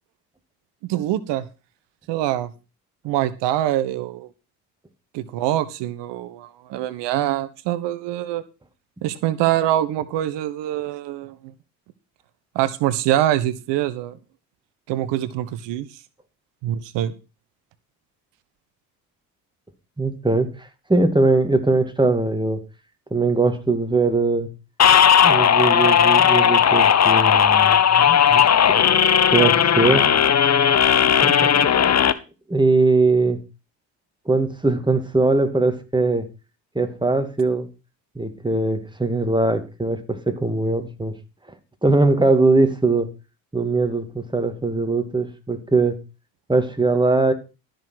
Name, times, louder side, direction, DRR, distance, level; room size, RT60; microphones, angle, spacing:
voice 1, 0.9-1.5 2.1-2.5 3.0-4.3 5.1-8.4 9.0-11.3 12.5-14.2 14.9-15.9 16.6-17.1, right 13 dB, 70° right, 15 dB, 1.1 m, -24 dB
voice 2, 20.0-22.6 23.1-24.5 25.2-28.5 29.3-30.1 31.2-32.1 32.5-33.4 34.3-36.3 36.7-37.7 38.2-41.1 41.8-43.1 43.5-46.0 46.5-47.3, right 3 dB, 10° right, 7 dB, 2.4 m, -21 dB
sound 1, 24.8-32.1, left 8 dB, 35° left, 1.0 m, -16 dB
12.5 x 6.6 x 6.1 m, 0.30 s
hypercardioid pair, 55°, 44 cm